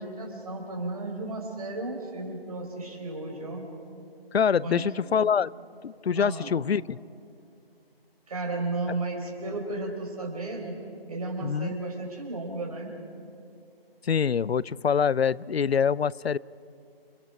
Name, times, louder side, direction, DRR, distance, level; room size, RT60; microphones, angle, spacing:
voice 1, 0.0-3.7 4.6-4.9 6.1-6.5 8.3-10.8 11.1-12.9, right 2 dB, 35° right, 1 dB, 4.5 m, -34 dB
voice 2, 4.3-5.5 5.8-7.0 11.4-11.7 14.0-16.4, left 7 dB, 85° left, 23 dB, 0.5 m, -25 dB
29.0 x 20.5 x 5.1 m, 2.5 s
figure-of-eight pair, 165°, 31 cm